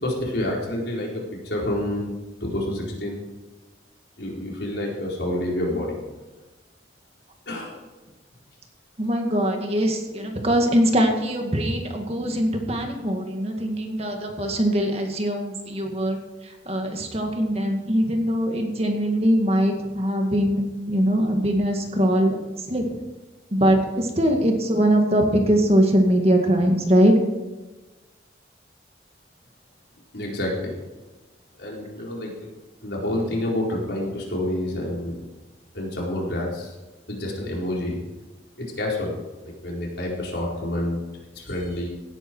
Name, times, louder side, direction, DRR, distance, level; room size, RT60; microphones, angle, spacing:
voice 1, 0.0-2.1 2.4-3.2 4.2-6.0 7.5-7.8 30.1-30.8 31.6-32.5 32.8-35.2 35.7-36.7 37.1-38.0 38.6-39.1 39.4-41.0 41.3-41.9, left 1 dB, 75° left, -3 dB, 4.4 m, -28 dB
voice 2, 9.0-16.2 16.4-22.4 22.7-22.9 23.5-27.1, equal, 35° right, 3 dB, 2.0 m, -22 dB
17.5 x 9.9 x 4.7 m, 1.2 s
head